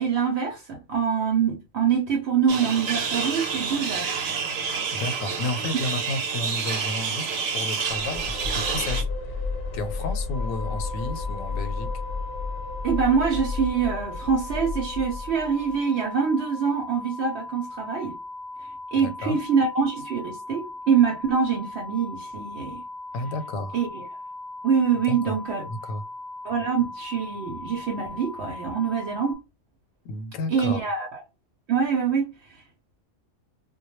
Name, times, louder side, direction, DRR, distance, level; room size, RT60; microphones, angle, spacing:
voice 1, 0.0-4.1 12.8-18.2 18.9-22.8 23.7-24.0 24.6-25.7 26.4-29.4 30.5-31.2 31.7-32.6, right 6 dB, 65° right, 0.8 m, -25 dB
sound 1, 2.5-9.0, right 5 dB, 90° right, 1.1 m, -28 dB
voice 2, 4.9-7.3 7.5-9.4 9.7-11.9 19.0-19.4 23.1-23.8 25.1-25.4 25.7-26.0 30.0-30.8, left 2 dB, 90° left, 1.0 m, -32 dB
sound 2, 7.9-15.7, left 4 dB, 60° left, 0.8 m, -32 dB
sound 3, 10.3-29.3, left 2 dB, 20° right, 0.4 m, -39 dB
2.2 x 2.1 x 2.9 m
omnidirectional pair, 1.3 m